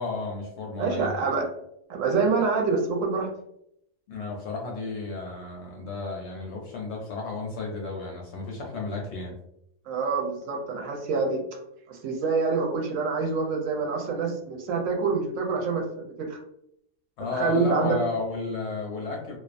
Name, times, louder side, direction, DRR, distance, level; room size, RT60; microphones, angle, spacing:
voice 1, 0.0-1.3 4.1-9.3 17.2-19.4, left 3 dB, 65° left, 0 dB, 0.7 m, -33 dB
voice 2, 0.8-1.5 1.9-3.3 9.9-11.4 11.9-16.4 17.4-18.0, right 4 dB, 75° right, 1 dB, 0.9 m, -26 dB
2.4 x 2.3 x 2.4 m, 0.75 s
omnidirectional pair, 1.5 m